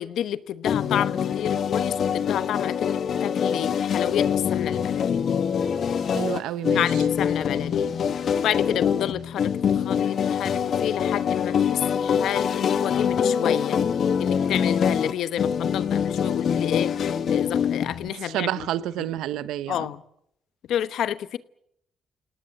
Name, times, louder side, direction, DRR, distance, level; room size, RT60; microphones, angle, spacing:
voice 1, 0.0-5.3 6.7-8.0 8.4-13.8 14.2-18.5 19.7-20.0 20.7-21.4, left 10 dB, 75° left, 1.1 m, -30 dB
sound 1, 0.6-18.1, left 7 dB, 60° left, 1.4 m, -24 dB
voice 2, 6.1-7.0 18.2-19.9, right 12 dB, 90° right, 0.9 m, -29 dB
29.0 x 18.0 x 7.7 m
cardioid pair, 90°, 0 cm